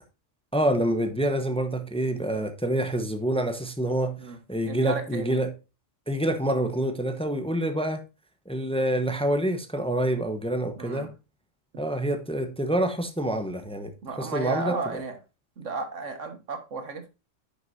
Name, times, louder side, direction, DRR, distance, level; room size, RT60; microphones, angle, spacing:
voice 1, 0.5-4.2 4.5-5.5 6.1-8.0 8.5-11.1 11.8-13.9 14.2-14.7, right 1 dB, 5° left, 0.9 m, -27 dB
voice 2, 4.6-5.4 10.8-11.1 14.0-15.2 15.6-17.1, right 4 dB, 85° right, 1.8 m, -33 dB
10.5 x 6.4 x 2.6 m
omnidirectional pair, 1.3 m